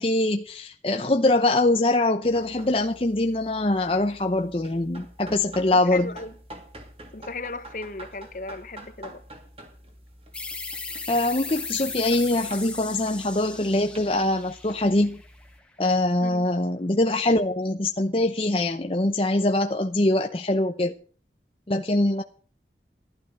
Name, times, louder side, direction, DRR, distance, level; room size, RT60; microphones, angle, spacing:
voice 1, 0.0-6.1 11.1-15.2 15.8-20.9 21.7-22.2, left 2 dB, 30° left, 0.8 m, -23 dB
sound 1, 2.2-15.6, right 1 dB, 35° right, 3.0 m, -47 dB
voice 2, 5.7-6.3 7.1-9.2 16.2-16.5, left 3 dB, 45° left, 1.1 m, -36 dB
sound 2, 10.3-15.6, left 3 dB, 5° left, 1.7 m, -37 dB
15.0 x 12.0 x 6.7 m
head